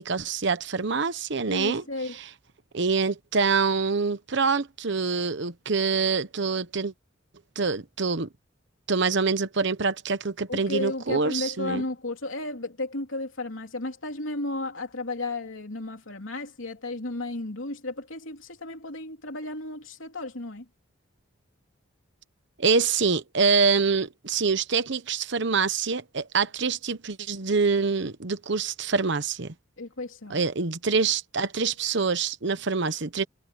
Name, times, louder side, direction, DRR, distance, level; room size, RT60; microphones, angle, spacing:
voice 1, 0.0-1.8 2.7-6.9 7.6-8.3 8.9-11.8 22.6-29.5 30.3-33.2, right 4 dB, 65° right, 1.0 m, -25 dB
voice 2, 1.5-2.2 10.5-20.6 29.8-30.4, left 2 dB, 90° left, 3.1 m, -33 dB
head